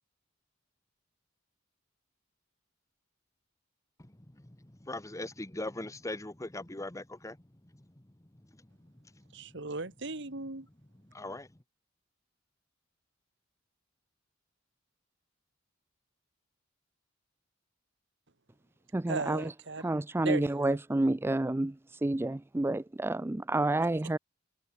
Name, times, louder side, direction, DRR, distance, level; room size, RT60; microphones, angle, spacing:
voice 1, 4.5-7.4 11.1-11.5, left 2 dB, 15° left, 1.1 m, -40 dB
voice 2, 9.3-10.7 19.1-19.8 20.2-20.8, right 3 dB, 60° right, 2.0 m, -37 dB
voice 3, 18.9-24.2, right 2 dB, 10° right, 0.4 m, -30 dB
head